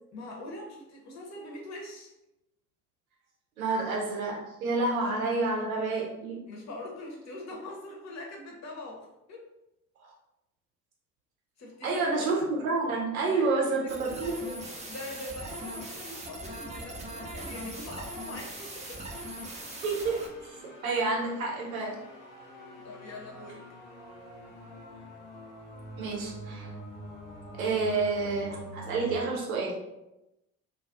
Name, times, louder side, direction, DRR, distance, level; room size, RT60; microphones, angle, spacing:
voice 1, 0.1-2.1 6.5-9.5 11.6-12.3 13.3-14.2 14.8-19.0 22.4-22.5 22.8-23.6, left 2 dB, 40° left, -1 dB, 0.8 m, -43 dB
voice 2, 3.6-6.4 11.8-14.5 19.8-22.0 26.0-26.7 27.6-29.7, right 3 dB, 85° right, -2 dB, 0.7 m, -29 dB
sound 1, 13.9-20.3, right 1 dB, 15° right, 0.5 m, -40 dB
sound 2, 18.9-29.1, equal, 75° left, 0.6 m, -46 dB
2.2 x 2.2 x 2.5 m, 0.90 s
figure-of-eight pair, 50°, 41 cm